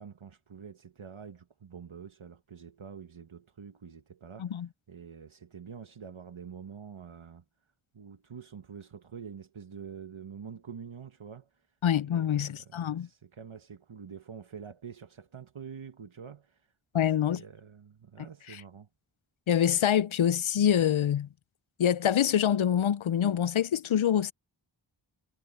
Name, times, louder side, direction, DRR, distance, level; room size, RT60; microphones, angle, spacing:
voice 1, 0.0-7.4 7.9-11.7 12.1-16.7 16.9-18.9, right 7 dB, 85° right, 1.1 m, -46 dB
voice 2, 11.8-13.1 16.9-17.4 18.5-18.6 19.5-21.3 21.8-24.3, left 9 dB, 80° left, 0.6 m, -25 dB
wide cardioid pair, 50°, 47 cm